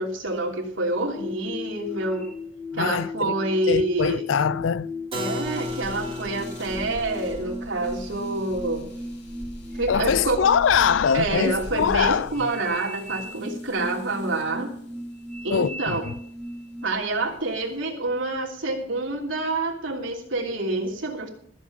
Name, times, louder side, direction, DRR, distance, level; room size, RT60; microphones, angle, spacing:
voice 1, 0.0-2.3 2.7-4.3 5.1-8.9 9.8-10.4 11.1-14.7 15.4-16.1 16.8-21.3, right 2 dB, 80° right, 3.0 m, -27 dB
sound 1, 1.1-16.9, left 2 dB, 5° left, 1.2 m, -37 dB
voice 2, 2.7-3.3 3.7-4.9 9.9-12.3 15.5-16.0, left 7 dB, 75° left, 0.4 m, -22 dB
Keyboard (musical), 5.1-10.7, equal, 30° right, 2.0 m, -38 dB
sound 2, 5.4-14.6 15.4-15.8 16.4-16.5 17.0-17.8, left 1 dB, 60° left, 2.6 m, -41 dB
14.0 x 7.3 x 7.1 m
head